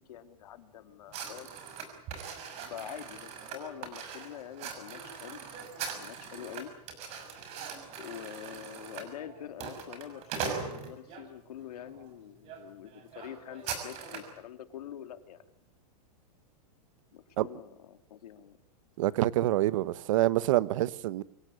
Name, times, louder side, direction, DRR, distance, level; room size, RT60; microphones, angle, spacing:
voice 1, 0.0-1.5 2.7-5.4 5.9-6.7 8.0-15.4 17.1-18.6, left 10 dB, 75° left, 2.9 m, -45 dB
sound 1, 1.1-11.3 11.9-12.1 12.4-12.6 12.9-14.4, right 6 dB, 30° right, 6.1 m, -41 dB
voice 2, 19.0-21.2, right 15 dB, 55° right, 1.2 m, -26 dB
25.5 x 17.5 x 9.9 m
supercardioid pair, 160°, 20 cm